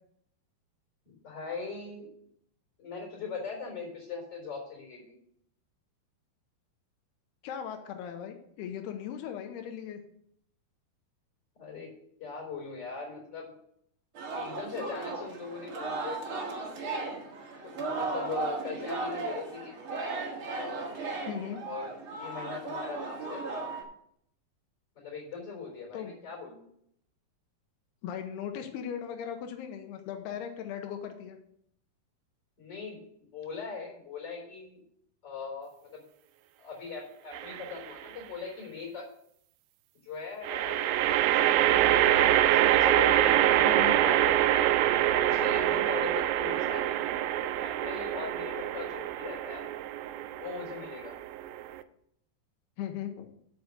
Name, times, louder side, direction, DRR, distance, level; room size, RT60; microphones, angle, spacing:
voice 1, 1.0-2.1 2.8-5.2 11.6-11.9 12.2-13.5 14.3-16.5 17.6-19.8 20.5-20.9 21.7-23.4 25.0-26.6 32.6-34.8 35.2-36.0 36.6-39.0 40.0-44.8 45.2-49.6 50.4-51.1, left 5 dB, 25° left, 0 dB, 4.5 m, -40 dB
voice 2, 7.4-10.0 21.3-21.6 25.9-26.1 28.0-31.4 43.6-44.0 52.8-53.3, left 9 dB, 90° left, 6 dB, 2.9 m, -38 dB
Singing, 14.1-23.8, right 3 dB, 45° right, 1.8 m, -36 dB
sound 1, 37.3-37.9 40.4-51.8, right 12 dB, 80° right, 2.3 m, -25 dB
8.1 x 6.8 x 6.7 m, 0.71 s
omnidirectional pair, 4.6 m